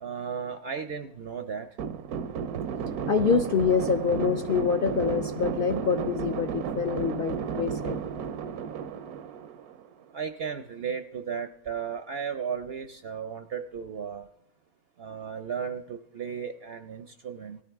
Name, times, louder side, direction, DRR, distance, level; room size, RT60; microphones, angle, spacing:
voice 1, 0.0-1.7 10.1-14.3 15.0-17.6, right 7 dB, 60° right, 8 dB, 0.7 m, -35 dB
sound 1, 1.8-10.1, right 7 dB, 85° right, 1.2 m, -33 dB
voice 2, 3.1-8.0, left 6 dB, 55° left, 5 dB, 0.6 m, -26 dB
19.0 x 14.0 x 3.5 m, 0.79 s
omnidirectional pair, 1.6 m